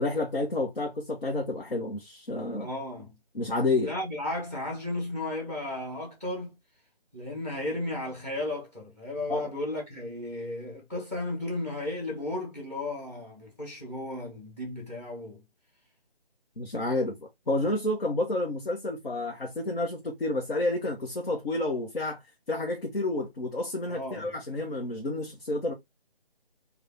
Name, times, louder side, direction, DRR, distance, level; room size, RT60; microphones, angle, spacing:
voice 1, 0.0-2.7 3.3-3.9 9.3-9.5 16.6-22.2 22.5-25.7, left 2 dB, 65° left, 1.0 m, -30 dB
voice 2, 2.6-3.2 3.8-6.5 7.1-15.4 23.9-24.3, left 1 dB, 15° left, 1.0 m, -34 dB
3.3 x 2.4 x 3.4 m
figure-of-eight pair, 155°, 30 cm